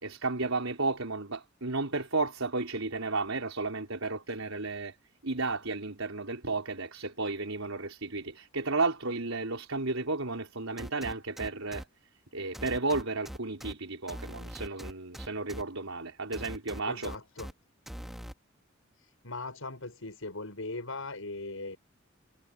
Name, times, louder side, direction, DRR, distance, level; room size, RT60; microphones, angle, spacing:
voice 1, 0.0-4.9 5.2-11.9 12.3-17.1, right 3 dB, 85° right, 4.5 m, -33 dB
sound 1, 10.8-11.8 12.5-13.7 14.1-15.6 16.3-17.5 17.9-18.3, equal, ahead, 2.5 m, -41 dB
voice 2, 16.9-17.5 19.0-21.8, left 2 dB, 90° left, 6.3 m, -39 dB
head